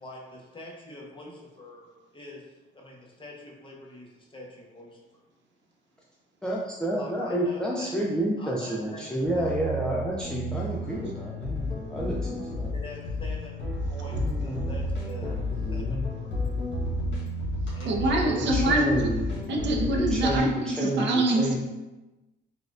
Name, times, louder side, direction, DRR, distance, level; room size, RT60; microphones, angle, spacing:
voice 1, 0.0-2.5 2.7-5.0 7.0-8.0 8.4-9.1 9.3-9.8 12.7-15.3 15.7-16.6 17.7-18.6, left 1 dB, 25° left, 0.8 m, -45 dB
voice 2, 6.4-12.7 14.1-14.6 15.2-15.3 15.6-16.1 18.2-19.4 19.8-21.6, right 1 dB, 5° left, 0.4 m, -30 dB
sound 1, 9.2-20.4, left 1 dB, 65° left, 1.3 m, -31 dB
voice 3, 17.9-19.1 19.5-21.6, right 2 dB, 65° right, 0.6 m, -25 dB
4.2 x 2.3 x 2.4 m
cardioid pair, 90°, 20 cm